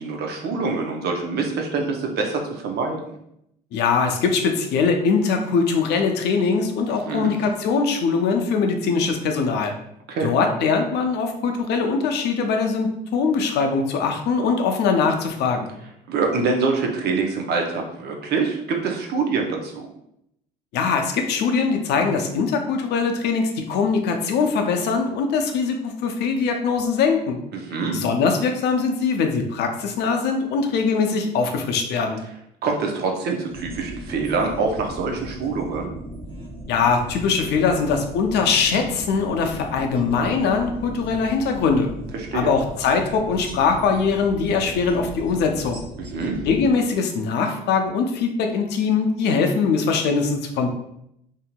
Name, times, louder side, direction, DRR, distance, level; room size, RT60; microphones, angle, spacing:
voice 1, 0.0-3.1 7.0-7.3 10.1-10.3 16.1-19.9 27.5-27.9 32.6-35.9 42.1-42.5 46.0-46.4, right 4 dB, 60° right, 2 dB, 0.6 m, -25 dB
voice 2, 3.7-9.7 10.2-15.7 20.7-27.4 27.9-32.2 36.7-41.9 42.3-45.8 46.4-50.7, left 5 dB, 60° left, 4 dB, 0.5 m, -22 dB
sound 1, 33.5-46.7, equal, 30° right, 1.0 m, -37 dB
2.8 x 2.7 x 2.2 m, 0.77 s
supercardioid pair, 70°, 19 cm